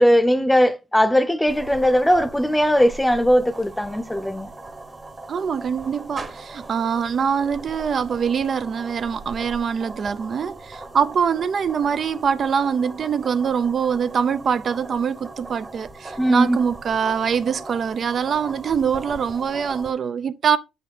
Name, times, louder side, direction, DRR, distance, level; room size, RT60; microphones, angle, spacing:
voice 1, 0.0-4.5 16.2-16.6, equal, 5° left, 0.7 m, -19 dB
sound 1, 1.5-19.9, right 2 dB, 25° right, 1.1 m, -39 dB
voice 2, 5.3-20.6, right 7 dB, 50° right, 0.5 m, -23 dB
7.6 x 5.7 x 3.6 m
cardioid pair, 90°, 0 cm